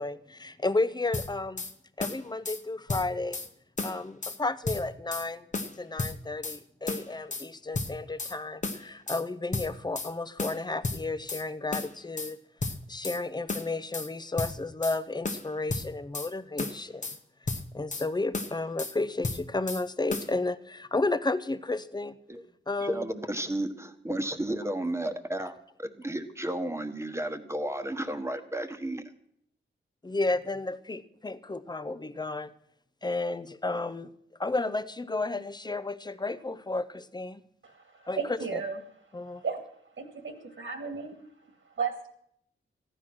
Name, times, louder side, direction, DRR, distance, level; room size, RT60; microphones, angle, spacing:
voice 1, 0.0-1.6 2.0-3.4 3.8-5.4 5.8-12.4 12.9-17.2 17.7-22.2 22.7-23.1 30.0-32.5 33.0-34.1 34.4-37.4 38.1-38.2 38.5-38.6 39.1-39.4, left 2 dB, 20° left, 14 dB, 0.7 m, -32 dB
sound 1, 1.1-1.7 2.0-2.6 2.9-3.5 3.8-4.4 4.7-5.3 5.5-6.6 6.9-7.5 7.7-8.4 8.6-9.2 9.5-10.1 10.4-11.4 11.7-12.3 12.6-13.2 13.5-14.1 14.4-15.0 15.2-16.3 16.6-17.2 17.5-18.1 18.3-18.9 19.2-19.8 20.1-20.3, left 3 dB, 35° left, 1.1 m, -33 dB
voice 2, 22.8-29.0, right 1 dB, 15° right, 7 dB, 1.3 m, -33 dB
voice 3, 37.6-38.8 39.2-39.6 40.0-41.2 41.7-42.1, right 6 dB, 75° right, 6 dB, 2.1 m, -34 dB
14.5 x 10.5 x 6.2 m, 0.72 s
cardioid pair, 70°, 21 cm